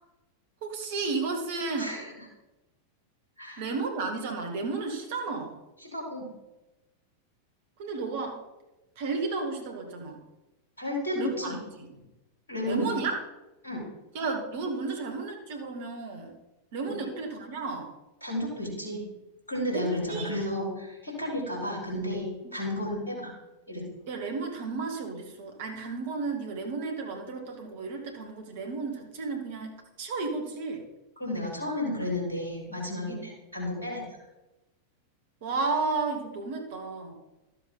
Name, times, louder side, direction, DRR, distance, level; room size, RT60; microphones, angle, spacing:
voice 1, 0.6-1.9 3.6-5.6 7.8-8.4 9.0-10.2 11.2-11.9 12.6-13.2 14.1-16.3 16.7-17.9 19.7-20.3 24.1-30.8 33.1-33.2 35.4-37.2, right 4 dB, 55° right, 3 dB, 1.9 m, -33 dB
voice 2, 1.8-2.2 3.4-3.6 5.8-6.3 10.8-11.6 12.5-13.0 13.6-13.9 18.2-19.1 19.5-23.3 23.7-23.8 31.2-34.0, left 1 dB, 75° left, -3 dB, 4.0 m, -32 dB
13.0 x 7.6 x 4.1 m, 1.0 s
figure-of-eight pair, 90°, 0 cm